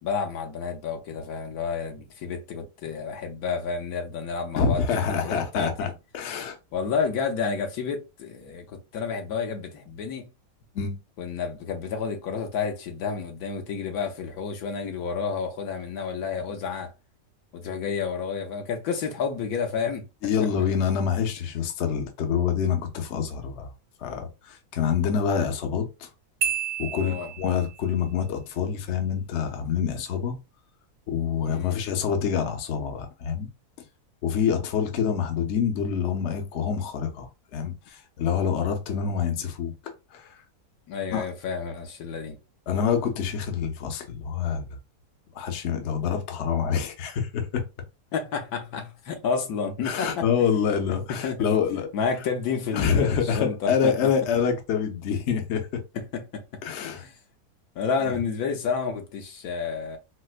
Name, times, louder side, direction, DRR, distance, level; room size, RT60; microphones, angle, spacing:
voice 1, 0.0-5.9 6.7-10.3 11.2-16.9 17.5-20.1 26.9-27.3 31.4-31.8 40.9-42.4 48.1-50.3 51.1-51.6 51.9-53.9 55.9-56.6 57.0-57.1 57.8-60.0, left 5 dB, 75° left, 1.2 m, -30 dB
voice 2, 4.6-6.6 10.7-11.0 20.2-23.7 24.0-26.1 26.8-30.4 31.1-33.5 34.2-40.4 41.1-41.3 42.7-44.8 45.3-47.6 49.8-51.9 52.7-55.8 56.6-57.1 58.1-58.2, left 7 dB, 60° left, 0.9 m, -26 dB
Marimba xylophone, 26.4-27.8, right 7 dB, 70° right, 0.7 m, -30 dB
4.2 x 2.1 x 2.4 m
omnidirectional pair, 1.6 m